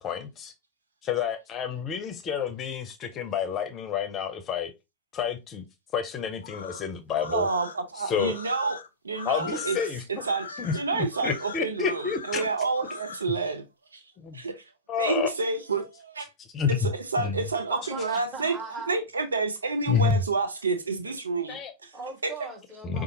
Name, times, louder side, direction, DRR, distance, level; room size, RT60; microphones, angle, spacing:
voice 1, 0.0-0.5 1.0-4.7 5.1-5.6 5.9-7.5 8.0-8.3 9.3-10.0 10.6-12.4 13.3-13.4 14.2-14.4 14.9-15.3 16.5-16.9 17.2-17.4 19.9-20.2 21.5-21.7 22.8-23.0, left 6 dB, 25° left, 0.6 m, -29 dB
sound 1, 6.4-13.3, left 5 dB, 70° left, 0.4 m, -41 dB
voice 2, 7.3-8.8 9.0-9.8 10.2-13.6 13.9-14.0 14.3-14.6 15.0-16.3 16.7-18.6 18.9-21.9 22.2-22.3, right 4 dB, 75° right, 0.6 m, -29 dB
voice 3, 17.7-18.9 21.9-23.0, right 3 dB, 20° right, 1.8 m, -39 dB
4.9 x 2.4 x 2.8 m
figure-of-eight pair, 90°, 0 cm